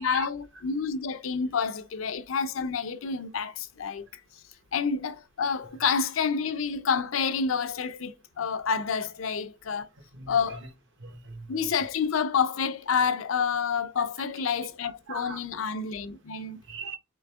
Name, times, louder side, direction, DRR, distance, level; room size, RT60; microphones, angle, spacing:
voice 1, 0.0-4.2 4.7-9.9 10.3-10.6 11.5-16.6, left 6 dB, 90° left, 0.5 m, -28 dB
voice 2, 10.1-10.7 11.0-11.5 14.0-14.1 14.8-15.4 16.7-17.0, right 5 dB, 65° right, 0.9 m, -41 dB
3.8 x 3.3 x 3.5 m
head